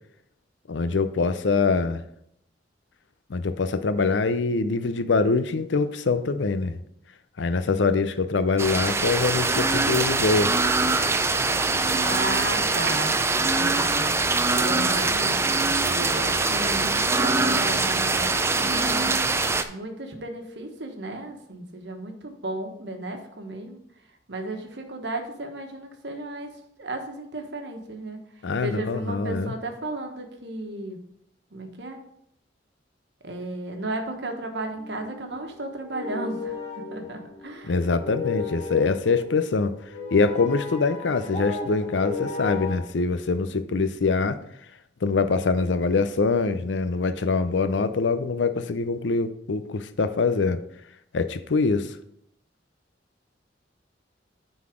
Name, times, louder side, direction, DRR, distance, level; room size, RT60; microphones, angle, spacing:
voice 1, 0.7-2.0 3.3-6.8 7.4-10.5 28.4-29.5 37.6-39.8 40.1-44.4 45.0-50.6 51.1-51.9, left 4 dB, 85° left, 11 dB, 0.6 m, -24 dB
sound 1, 8.6-19.6, right 3 dB, 15° right, 0.4 m, -23 dB
voice 2, 12.0-14.1 14.6-19.2 19.7-23.8 24.3-26.5 26.8-28.2 28.6-31.0 31.5-32.0 33.2-37.8, right 2 dB, 70° right, 4 dB, 1.2 m, -34 dB
sound 2, 34.8-42.8, left 4 dB, 40° left, 1.3 m, -35 dB
9.5 x 4.0 x 4.9 m, 0.73 s
head